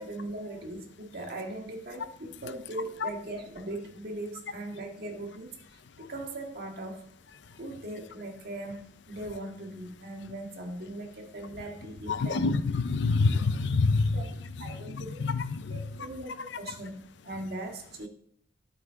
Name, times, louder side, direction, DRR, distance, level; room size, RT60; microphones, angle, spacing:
voice 1, 0.0-5.6 6.0-7.1 7.6-12.5 14.1-14.2 14.6-15.2 15.7-18.1, right 1 dB, 55° right, 2 dB, 1.8 m, -39 dB
voice 2, 12.1-14.3 14.6-15.8, left 3 dB, 60° left, 13 dB, 0.5 m, -27 dB
12.0 x 8.0 x 3.7 m, 0.67 s
head